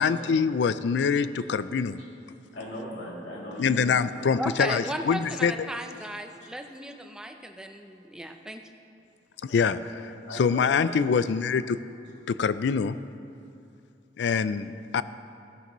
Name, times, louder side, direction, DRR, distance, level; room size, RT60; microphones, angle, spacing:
voice 1, 0.0-2.0 3.6-5.5 9.4-11.8 12.3-13.0 14.2-15.0, left 6 dB, 65° left, 14 dB, 0.4 m, -25 dB
voice 2, 2.5-3.9 4.2-4.3 9.5-9.6 9.9-10.9, equal, 85° left, -4 dB, 2.6 m, -39 dB
voice 3, 4.4-8.6, right 1 dB, 5° right, 5 dB, 0.5 m, -36 dB
14.5 x 11.0 x 3.1 m, 2.6 s
head